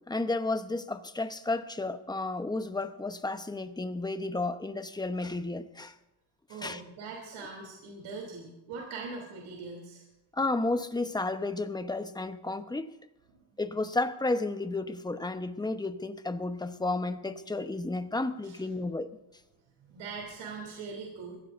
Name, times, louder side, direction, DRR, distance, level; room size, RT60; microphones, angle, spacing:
voice 1, 0.1-5.9 6.6-6.8 10.3-12.9 13.6-19.1, left 2 dB, 10° left, 1.0 m, -32 dB
voice 2, 6.5-10.0 13.3-13.4 18.4-18.6 19.9-21.4, right 4 dB, 75° right, 3.4 m, -41 dB
22.5 x 16.0 x 2.7 m
supercardioid pair, 85°, 48 cm